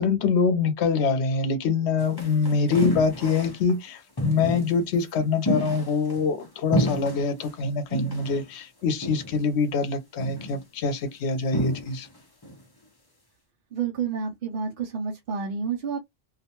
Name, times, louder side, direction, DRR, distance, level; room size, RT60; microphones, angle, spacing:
voice 1, 0.0-12.1, left 5 dB, 85° left, 0.9 m, -25 dB
sound 1, 2.0-3.7 4.2-4.8 5.5-6.5 6.7-7.5 7.9-8.5 9.0-9.5 10.2-10.6 11.5-12.2 12.4-12.6, equal, 25° left, 0.7 m, -30 dB
voice 2, 13.7-16.0, right 6 dB, 60° right, 0.7 m, -29 dB
2.4 x 2.1 x 2.8 m
omnidirectional pair, 1.1 m